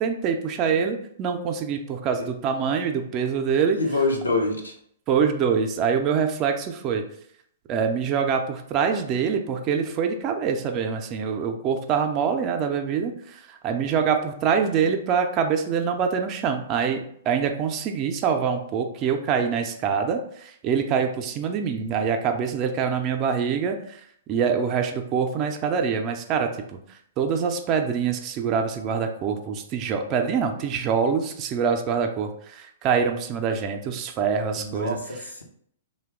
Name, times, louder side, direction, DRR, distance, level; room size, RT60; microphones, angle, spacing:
voice 1, 0.0-3.8 5.1-7.0 7.7-26.8 27.2-35.0, right 6 dB, 35° right, 5 dB, 0.4 m, -25 dB
voice 2, 3.7-4.7 34.5-35.4, left 2 dB, 90° left, 0 dB, 0.7 m, -26 dB
2.9 x 2.2 x 3.4 m, 0.66 s
figure-of-eight pair, 115°, 0 cm